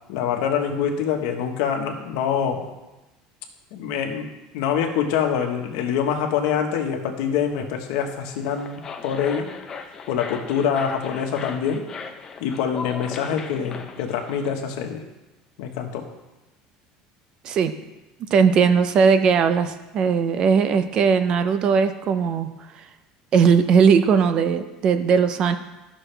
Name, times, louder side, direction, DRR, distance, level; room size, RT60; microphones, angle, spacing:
voice 1, 0.1-2.6 3.7-9.5 10.1-11.8 12.4-15.0 15.6-16.1, left 7 dB, 80° left, 4 dB, 1.2 m, -25 dB
sound 1, 8.3-14.5, left 5 dB, 25° left, 0.7 m, -37 dB
voice 2, 18.3-22.5 22.7-22.8 23.3-25.6, right 6 dB, 40° right, 10 dB, 0.6 m, -18 dB
13.0 x 6.3 x 3.3 m, 1.1 s
cardioid pair, 150°, 2 cm